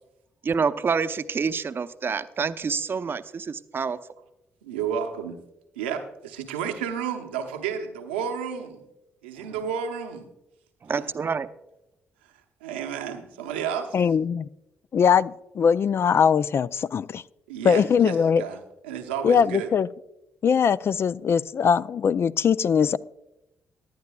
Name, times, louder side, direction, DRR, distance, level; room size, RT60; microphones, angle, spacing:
voice 1, 0.4-4.0 9.4-9.5 10.8-11.5, right 5 dB, 40° right, 13 dB, 0.6 m, -27 dB
voice 2, 4.6-5.4 5.8-8.8 9.2-10.3 11.0-11.1 12.6-14.0 17.5-19.7, right 7 dB, 90° right, 4 dB, 0.8 m, -31 dB
voice 3, 13.9-14.5 14.9-17.2 17.6-18.4 19.2-19.9 20.4-23.0, left 7 dB, 50° left, 17 dB, 0.3 m, -21 dB
18.5 x 11.0 x 2.3 m, 0.92 s
hypercardioid pair, 45°, 6 cm